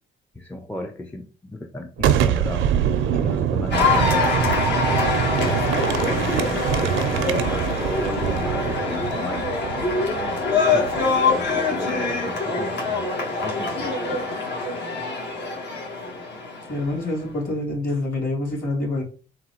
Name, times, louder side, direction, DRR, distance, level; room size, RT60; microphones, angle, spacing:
voice 1, 0.4-4.9 5.3-10.4 10.7-10.9 11.2-14.2, left 1 dB, 10° left, 4 dB, 0.4 m, -35 dB
Boom, 2.0-11.6, right 9 dB, 80° right, 0.5 m, -25 dB
Cheering / Applause, 3.7-17.1, left 3 dB, 65° left, 1.3 m, -24 dB
voice 2, 16.7-19.0, left 2 dB, 45° left, -2 dB, 2.3 m, -26 dB
3.9 x 2.3 x 4.3 m, 0.37 s
cardioid pair, 90°, 20 cm